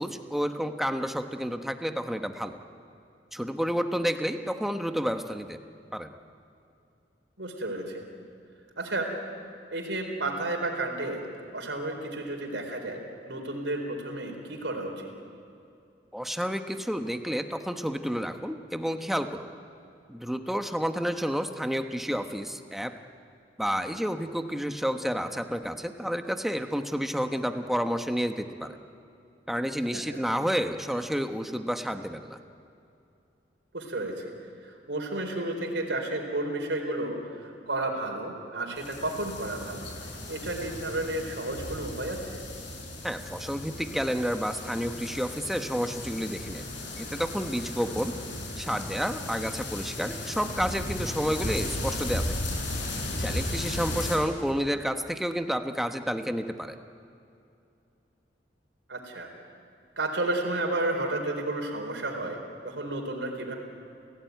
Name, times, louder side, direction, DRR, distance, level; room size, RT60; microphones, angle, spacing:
voice 1, 0.0-2.6 3.3-5.6 5.9-6.1 16.1-19.5 20.1-22.9 23.6-28.8 29.5-32.4 43.0-46.7 47.0-48.1 48.6-52.4 53.2-56.8, equal, ahead, 7 dB, 1.1 m, -30 dB
voice 2, 7.4-8.0 8.8-9.2 9.7-15.1 29.9-30.2 33.7-34.3 34.6-42.4 47.9-48.0 58.9-59.3 60.0-62.4 62.6-63.5, right 2 dB, 75° right, 2 dB, 4.0 m, -32 dB
sound 1, 38.8-54.2, left 1 dB, 80° left, 5.6 m, -35 dB
29.5 x 16.5 x 9.4 m, 2.6 s
head